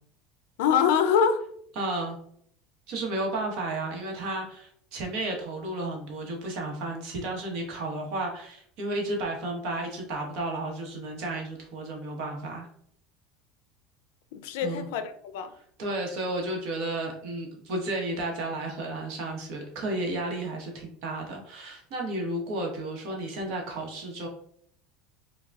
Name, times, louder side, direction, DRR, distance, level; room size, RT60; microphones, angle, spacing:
voice 1, 0.6-1.5 14.3-15.5, left 7 dB, 85° left, 0.4 m, -24 dB
voice 2, 1.8-2.2 2.9-12.7 14.6-14.9 15.8-24.3, right 2 dB, 60° right, 1.0 m, -32 dB
4.7 x 2.2 x 2.3 m
supercardioid pair, 140°, 0 cm